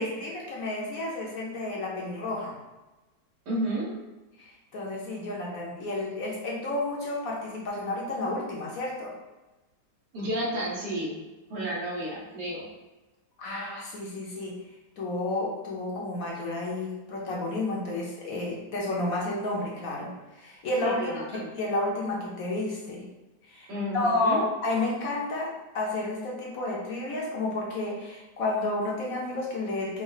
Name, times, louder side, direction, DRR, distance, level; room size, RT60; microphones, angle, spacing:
voice 1, 0.0-2.5 4.4-9.1 13.4-14.6 15.0-23.1 23.5-23.7 23.9-30.0, left 2 dB, 60° left, -3 dB, 1.1 m, -31 dB
voice 2, 3.5-3.9 10.1-11.2 11.5-12.6 20.8-21.5 23.7-24.5, equal, 70° right, -6 dB, 1.9 m, -31 dB
5.1 x 2.1 x 4.0 m, 1.1 s
omnidirectional pair, 1.9 m